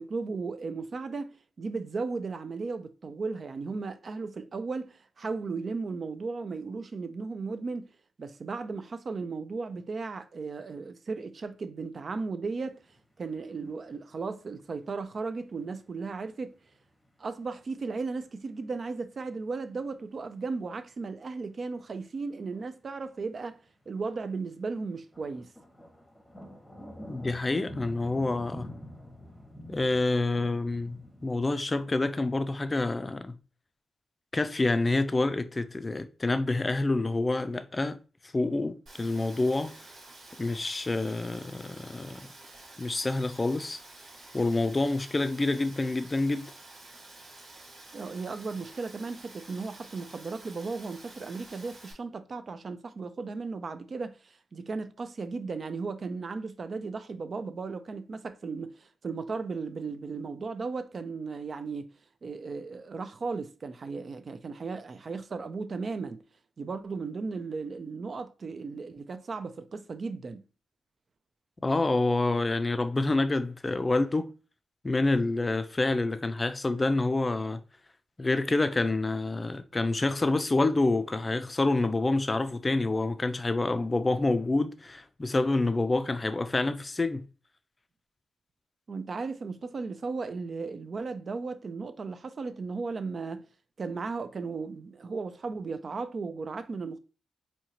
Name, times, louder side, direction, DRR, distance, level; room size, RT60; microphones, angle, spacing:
voice 1, 0.0-7.9 8.2-12.8 13.2-16.6 17.2-25.5 47.9-61.9 62.2-66.2 66.6-70.4 88.9-93.5 93.8-97.0, right 4 dB, 45° right, 0.4 m, -36 dB
sound 1, 12.5-17.5 18.0-18.4 18.7-18.9 19.4-19.5 20.2-20.3 20.9-21.0 21.4-21.5 22.0-22.6 23.0-23.2 23.7-23.8 24.2-24.5 25.0-32.3, equal, 10° left, 0.9 m, -47 dB
voice 2, 27.1-28.7 29.7-33.4 34.3-38.0 38.3-39.7 40.4-42.2 42.8-43.8 44.3-46.5 71.6-74.3 74.8-77.6 78.2-87.3, left 2 dB, 25° left, 0.4 m, -27 dB
Rain, 38.9-51.9, right 2 dB, 75° right, 1.5 m, -50 dB
4.4 x 2.8 x 2.8 m
cardioid pair, 105°, 0 cm